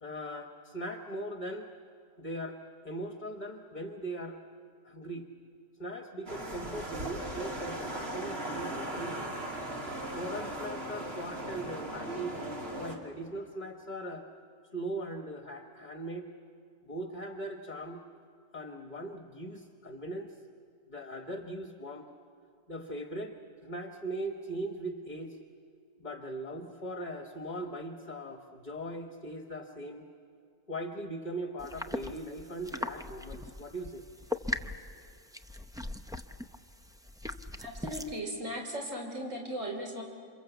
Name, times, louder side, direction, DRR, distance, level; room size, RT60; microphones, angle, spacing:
voice 1, 0.0-1.7 2.2-2.6 2.8-4.4 4.8-5.3 5.8-9.3 10.1-12.4 12.8-14.2 14.7-16.3 16.8-18.0 18.5-20.4 20.9-22.1 22.7-23.3 23.6-25.4 26.0-30.0 30.7-34.0 34.6-34.7, right 1 dB, 35° left, 5 dB, 1.3 m, -39 dB
sound 1, 6.3-13.0, right 1 dB, 50° right, 2.9 m, -38 dB
sound 2, 31.6-38.2, left 1 dB, 5° right, 0.4 m, -40 dB
voice 2, 37.6-40.0, equal, 70° right, 2 dB, 3.4 m, -37 dB
28.5 x 26.0 x 8.1 m, 2.4 s
omnidirectional pair, 1.4 m